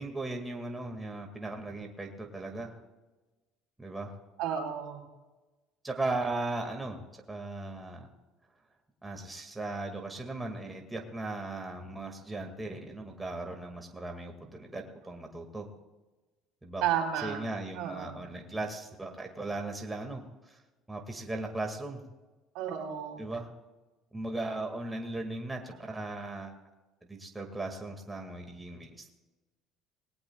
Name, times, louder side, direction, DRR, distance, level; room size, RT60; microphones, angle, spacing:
voice 1, 0.0-2.7 3.8-4.1 5.8-8.1 9.0-15.7 16.6-16.8 17.2-20.6 20.9-22.0 23.2-23.5 24.1-26.5 27.1-29.1, right 2 dB, 10° right, 2 dB, 2.0 m, -37 dB
voice 2, 4.4-5.0 16.8-17.4 17.8-18.2 22.5-23.2, right 9 dB, 75° right, 2 dB, 3.4 m, -32 dB
19.5 x 17.5 x 2.3 m, 1.2 s
supercardioid pair, 110°, 0 cm